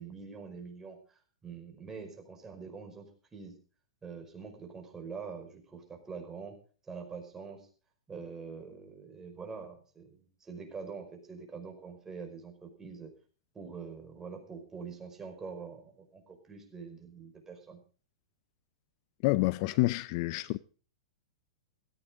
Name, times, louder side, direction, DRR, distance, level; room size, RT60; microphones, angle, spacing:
voice 1, 0.0-3.6 4.0-6.6 6.8-7.7 8.1-13.1 13.5-17.8, right 5 dB, 15° right, 5.2 m, -45 dB
voice 2, 19.2-20.6, left 20 dB, 50° left, 0.6 m, -28 dB
17.0 x 15.0 x 3.7 m
hypercardioid pair, 115°, 3 cm